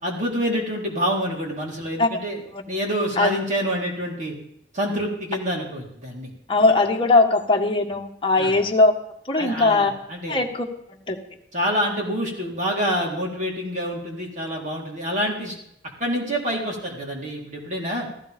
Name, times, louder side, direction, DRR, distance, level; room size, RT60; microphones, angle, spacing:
voice 1, 0.0-2.4 2.7-4.3 4.7-6.3 8.4-8.5 9.4-10.4 11.5-15.6 16.0-18.1, equal, 45° right, -2 dB, 4.0 m, -27 dB
voice 2, 6.5-8.9 9.2-9.9 10.3-10.7 11.1-11.2, left 3 dB, 30° left, 2 dB, 1.6 m, -19 dB
15.0 x 15.0 x 5.3 m, 0.74 s
head